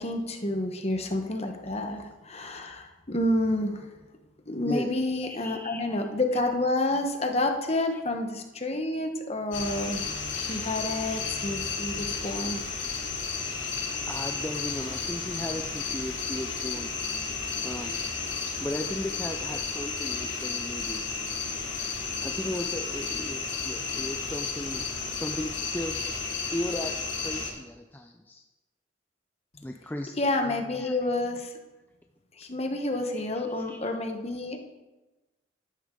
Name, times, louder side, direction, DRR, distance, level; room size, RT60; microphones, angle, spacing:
voice 1, 0.0-3.9 4.5-10.0 10.3-12.6 30.2-31.5 32.4-34.6, left 1 dB, 35° left, 5 dB, 1.2 m, -29 dB
voice 2, 4.6-6.6 6.8-6.9 7.9-8.0 13.8-16.9 17.6-18.0 18.5-21.0 22.2-26.1 26.5-28.4 29.6-31.0 32.9-34.0, left 1 dB, 10° left, 3 dB, 0.5 m, -37 dB
sound 1, 9.5-27.5, left 5 dB, 80° left, 2.7 m, -33 dB
11.5 x 11.5 x 3.8 m, 1.1 s
head